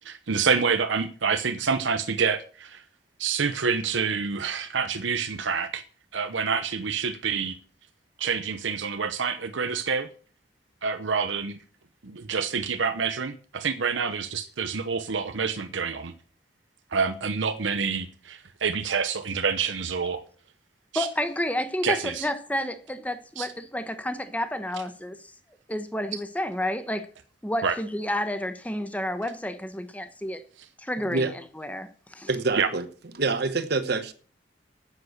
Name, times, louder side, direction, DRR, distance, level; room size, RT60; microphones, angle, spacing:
voice 1, 0.0-2.8 3.2-5.8 6.1-7.6 8.2-10.1 10.8-11.6 12.0-16.1 16.9-20.2 20.9-21.1 21.8-22.3 23.4-23.5 27.6-27.8 32.6-32.7, right 5 dB, 80° right, 0.8 m, -27 dB
voice 2, 20.9-25.2 25.7-27.1 27.4-30.4 30.8-32.3, left 1 dB, 10° left, 1.1 m, -30 dB
voice 3, 32.3-32.9 33.1-34.1, right 3 dB, 60° right, 1.0 m, -26 dB
9.7 x 8.9 x 6.6 m
head